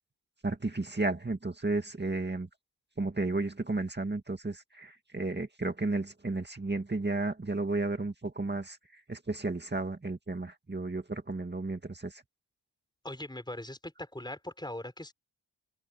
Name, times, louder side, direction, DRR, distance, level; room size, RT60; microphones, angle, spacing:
voice 1, 0.4-2.5 3.0-8.8 9.1-12.2, right 2 dB, 25° right, 2.1 m, -33 dB
voice 2, 13.0-15.1, left 1 dB, 10° left, 5.6 m, -40 dB
wide cardioid pair, 115°, 40 cm